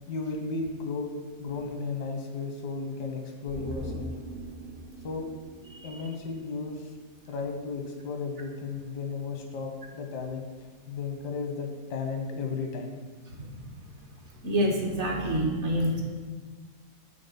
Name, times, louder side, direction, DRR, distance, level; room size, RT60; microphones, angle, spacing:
voice 1, 0.1-1.1 1.4-4.1 5.0-5.3 5.8-6.9 7.3-10.5 10.9-13.0, left 4 dB, 90° left, 3 dB, 1.5 m, -34 dB
sound 1, 3.5-6.9 7.2-7.3, right 1 dB, 75° right, 0.4 m, -41 dB
voice 2, 5.7-6.0 13.4-13.5 14.4-16.0, equal, 55° right, 0 dB, 1.0 m, -27 dB
5.9 x 3.6 x 5.3 m, 1.5 s
omnidirectional pair, 1.7 m